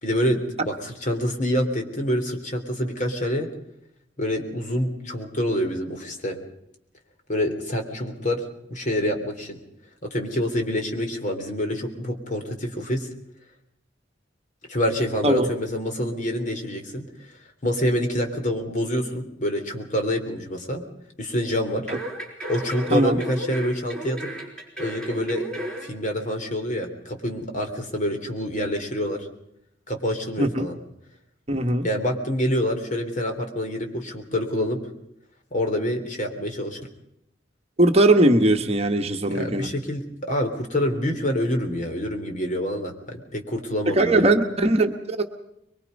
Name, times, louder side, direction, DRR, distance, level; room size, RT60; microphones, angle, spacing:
voice 1, 0.0-3.5 4.2-6.4 7.3-9.6 10.0-13.1 14.7-17.1 17.6-20.8 21.2-21.9 22.5-24.3 24.8-25.5 25.8-29.3 29.9-30.8 31.8-34.8 35.5-36.8 39.3-44.2, equal, 45° left, 4 dB, 3.5 m, -26 dB
sound 1, 21.9-25.9 26.2-26.3, right 1 dB, 5° left, 5.1 m, -34 dB
voice 2, 31.5-31.9 37.8-39.7 44.0-45.3, right 2 dB, 35° right, 5 dB, 1.3 m, -20 dB
23.5 x 23.0 x 5.4 m, 0.79 s
head